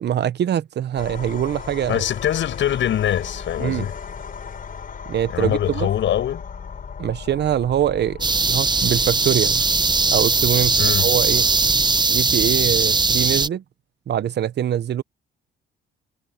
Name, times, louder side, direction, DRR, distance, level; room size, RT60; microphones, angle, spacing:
voice 1, 0.0-2.0 3.6-3.9 5.1-5.9 7.0-9.7 10.1-11.5 12.1-13.6 14.1-15.0, right 10 dB, 60° right, 0.9 m, -23 dB
sound 1, 1.0-12.0, left 6 dB, 45° left, 5.4 m, -36 dB
voice 2, 1.9-3.9 5.3-6.4 10.8-11.1, left 11 dB, 70° left, 7.8 m, -23 dB
sound 2, 8.2-13.5, right 4 dB, 20° right, 0.8 m, -19 dB
cardioid pair, 90°, 20 cm